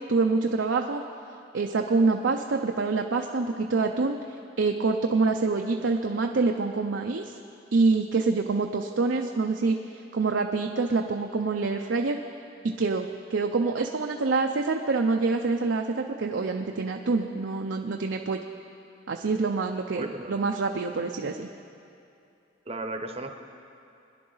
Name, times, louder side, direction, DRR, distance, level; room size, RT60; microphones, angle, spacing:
voice 1, 0.1-1.0 1.5-4.2 4.6-7.3 7.7-9.8 10.1-12.2 12.6-18.4 19.1-21.5, right 3 dB, 75° right, 3 dB, 0.6 m, -26 dB
voice 2, 19.9-20.4 22.7-23.3, right 2 dB, 30° right, 6 dB, 0.8 m, -35 dB
21.5 x 10.5 x 3.9 m, 2.6 s
head